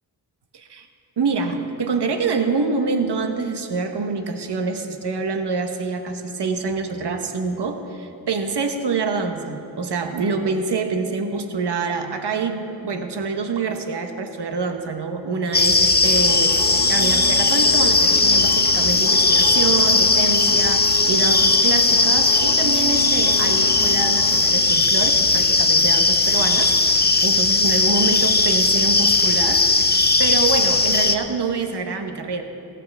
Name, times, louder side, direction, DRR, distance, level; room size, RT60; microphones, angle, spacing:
voice 1, 0.5-0.9 1.2-32.4, right 4 dB, 70° right, 6 dB, 1.1 m, -26 dB
sound 1, 15.5-31.2, left 3 dB, 25° left, 0.7 m, -18 dB
sound 2, 16.0-24.4, left 2 dB, 75° left, 1.5 m, -32 dB
16.5 x 14.5 x 3.5 m, 2.6 s
cardioid pair, 55°, 42 cm